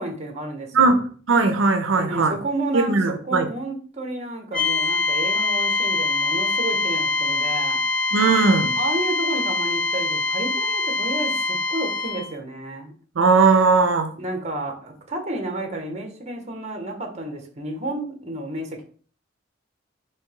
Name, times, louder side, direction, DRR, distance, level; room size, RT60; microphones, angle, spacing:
voice 1, 0.0-1.1 2.0-7.8 8.8-12.9 14.2-18.8, right 2 dB, 35° right, 1.0 m, -31 dB
voice 2, 0.7-2.3 2.7-3.5 8.1-8.7 13.2-14.1, right 4 dB, 80° right, 0.5 m, -18 dB
sound 1, 4.5-12.3, left 3 dB, 5° left, 0.9 m, -24 dB
3.4 x 2.9 x 4.7 m
head